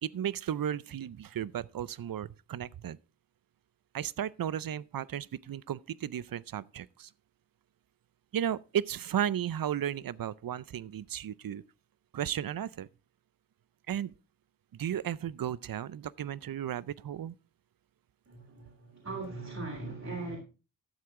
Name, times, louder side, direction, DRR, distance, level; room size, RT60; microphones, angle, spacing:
voice 1, 0.0-3.0 3.9-7.1 8.3-11.6 12.1-12.9 13.9-14.1 14.7-17.3, right 10 dB, 60° right, 0.5 m, -34 dB
voice 2, 18.3-20.4, right 3 dB, 40° right, 3.4 m, -39 dB
12.5 x 7.7 x 3.6 m
wide cardioid pair, 75°, 40 cm